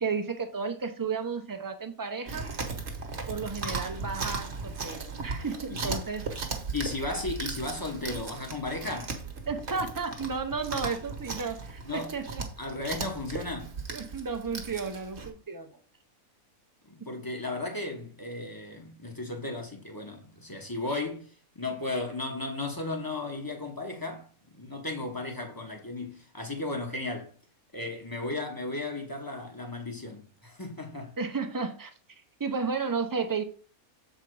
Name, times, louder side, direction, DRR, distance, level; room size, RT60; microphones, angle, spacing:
voice 1, 0.0-2.5 3.3-6.2 9.5-12.4 13.9-15.7 31.2-31.9 32.4-33.4, right 5 dB, 25° right, 0.5 m, -33 dB
Chewing mastication, 2.3-15.3, right 4 dB, 50° right, 1.4 m, -37 dB
voice 2, 5.7-6.0 6.7-9.2 11.9-12.1 12.6-13.8 16.8-27.3 27.7-31.1, left 2 dB, 15° left, 1.0 m, -35 dB
7.2 x 4.4 x 4.6 m
omnidirectional pair, 1.5 m